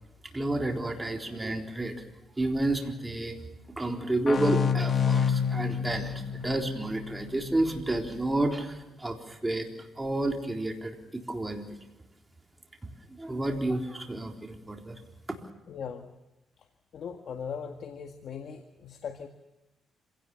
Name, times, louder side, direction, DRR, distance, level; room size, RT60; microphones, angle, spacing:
voice 1, 0.3-2.0 2.4-3.4 3.8-9.7 10.0-11.8 13.2-15.0, right 2 dB, 15° right, 3 dB, 3.9 m, -30 dB
sound 1, 4.3-7.7, left 7 dB, 45° left, 2.0 m, -28 dB
voice 2, 15.7-16.1 16.9-19.3, left 7 dB, 60° left, 6 dB, 1.8 m, -39 dB
26.5 x 17.5 x 7.2 m, 1.0 s
cardioid pair, 90°, 0 cm